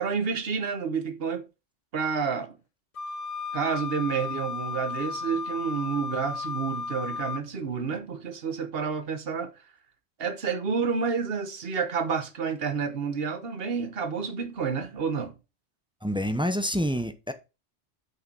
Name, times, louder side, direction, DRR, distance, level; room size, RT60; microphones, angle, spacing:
voice 1, 0.0-1.4 1.9-2.5 3.5-9.5 10.2-15.3, right 6 dB, 55° right, 1.4 m, -29 dB
Wind instrument woodwind instrument, 2.9-7.5, left 5 dB, 45° left, 0.5 m, -34 dB
voice 2, 16.0-17.3, equal, 5° right, 0.7 m, -27 dB
6.3 x 5.7 x 5.4 m
omnidirectional pair, 1.2 m